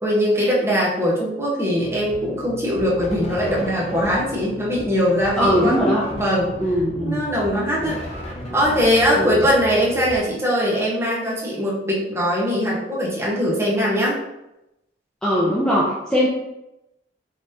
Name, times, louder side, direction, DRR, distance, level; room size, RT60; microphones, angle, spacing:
voice 1, 0.0-5.8 6.1-6.6 7.0-8.0 8.5-14.2, equal, 15° right, -5 dB, 1.1 m, -21 dB
sound 1, 1.8-10.2, left 1 dB, 60° left, 1.4 m, -39 dB
sound 2, 3.0-4.6 5.2-10.3, left 1 dB, 35° left, 0.7 m, -36 dB
voice 2, 5.4-6.0 6.6-7.2 7.7-8.0 9.2-9.4 15.2-16.3, equal, 5° left, -7 dB, 0.6 m, -20 dB
5.2 x 3.1 x 2.8 m, 0.89 s
head